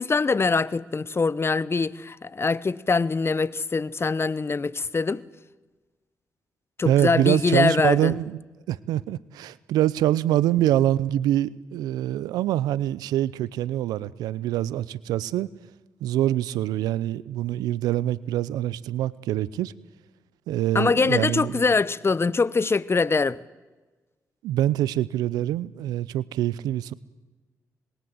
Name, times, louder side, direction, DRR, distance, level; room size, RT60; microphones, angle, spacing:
voice 1, 0.0-5.2 6.8-8.1 20.7-23.4, left 4 dB, 40° left, 1.1 m, -23 dB
voice 2, 6.8-8.4 8.7-15.5 16.0-19.7 20.5-21.6 24.4-26.9, right 13 dB, 85° right, 0.7 m, -25 dB
26.5 x 21.5 x 7.9 m
supercardioid pair, 45°, 6 cm